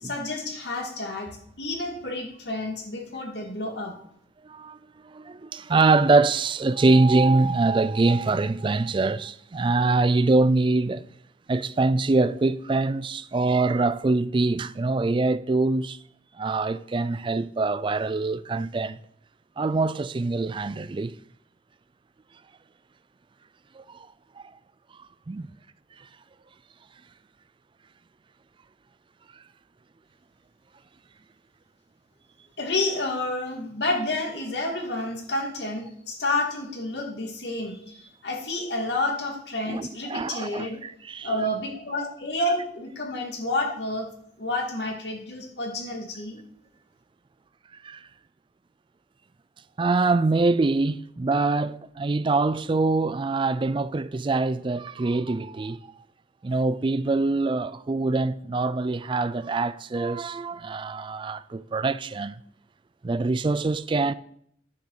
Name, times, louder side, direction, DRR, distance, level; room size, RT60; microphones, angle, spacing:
voice 1, 0.0-4.0 32.6-40.8 41.2-44.1 44.4-46.4, left 2 dB, 70° left, 2.5 m, -30 dB
voice 2, 4.4-4.8 5.0-11.0 11.5-16.0 16.4-19.0 19.6-21.1 23.7-24.1 25.0-25.5 26.0-26.1 39.7-41.3 47.8-48.1 49.8-55.8 56.4-62.4 63.0-64.1, right 3 dB, 30° right, 0.4 m, -24 dB
10.0 x 6.3 x 6.6 m
head